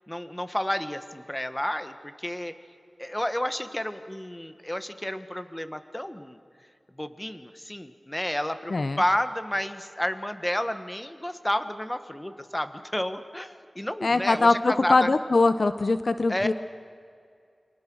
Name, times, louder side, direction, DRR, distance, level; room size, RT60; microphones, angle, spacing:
voice 1, 0.1-2.5 3.0-6.4 6.9-15.1 16.3-16.5, left 1 dB, 15° left, 10 dB, 1.5 m, -31 dB
voice 2, 8.7-9.0 14.0-16.5, left 3 dB, 65° left, 12 dB, 0.8 m, -22 dB
29.0 x 24.0 x 6.3 m, 2.3 s
wide cardioid pair, 55°, 0 cm